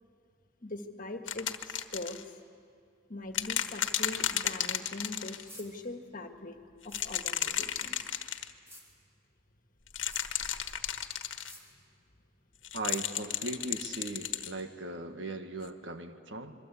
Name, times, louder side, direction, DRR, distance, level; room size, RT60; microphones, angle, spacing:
voice 1, 0.6-2.2 3.1-6.6 6.8-8.1, left 2 dB, 45° left, 5 dB, 1.7 m, -42 dB
sound 1, 1.3-2.2 3.3-5.4 6.8-8.5 9.9-11.5 12.6-14.5 15.6-15.7, left 10 dB, 90° left, 1.3 m, -33 dB
sound 2, 5.5-5.7 6.9-7.1 8.7-8.8 10.1-10.3 11.4-11.6 12.8-13.0, equal, 15° right, 4.0 m, -49 dB
voice 2, 12.7-16.5, right 2 dB, 70° right, 7 dB, 1.6 m, -38 dB
26.0 x 23.0 x 8.5 m, 2.4 s
head